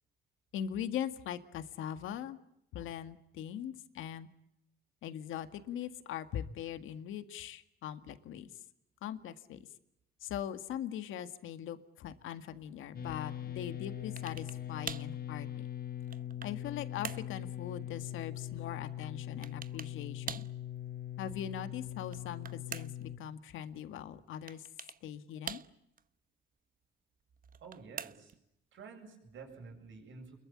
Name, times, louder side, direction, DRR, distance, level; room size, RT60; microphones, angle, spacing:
voice 1, 0.5-2.4 2.7-4.3 5.0-8.5 9.0-9.6 10.2-15.7 16.4-20.4 21.2-24.7 25.0-25.6, left 10 dB, 85° left, 10 dB, 2.0 m, -41 dB
sound 1, 12.9-23.2, left 11 dB, 45° left, 1.5 m, -41 dB
sound 2, 14.2-14.6 14.9-15.2 15.8-16.6 17.0-17.3 19.4-20.0 20.3-20.6 22.0-23.1 24.5-25.0 25.5-26.0 27.4-28.4, right 7 dB, 45° right, 1.1 m, -44 dB
voice 2, 27.6-28.3 28.7-30.4, right 4 dB, 75° right, 4 dB, 7.8 m, -50 dB
29.0 x 22.5 x 8.8 m, 0.81 s
cardioid pair, 90°, 20 cm